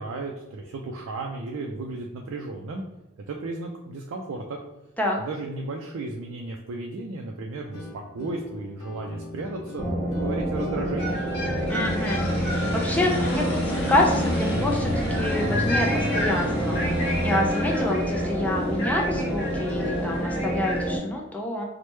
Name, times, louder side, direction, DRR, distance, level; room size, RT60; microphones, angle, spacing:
voice 1, 0.0-2.8 3.3-4.6 5.2-11.2, right 3 dB, 85° right, 1 dB, 0.4 m, -34 dB
sound 1, 7.7-19.9, left 1 dB, 90° left, 0.5 m, -37 dB
sound 2, 9.8-21.0, equal, 25° left, 1.0 m, -28 dB
sound 3, 11.0-20.9, left 1 dB, 55° left, 0.8 m, -31 dB
voice 2, 11.7-16.8 17.2-21.6, left 1 dB, 5° left, -1 dB, 0.3 m, -27 dB
3.1 x 2.1 x 3.1 m, 0.98 s
head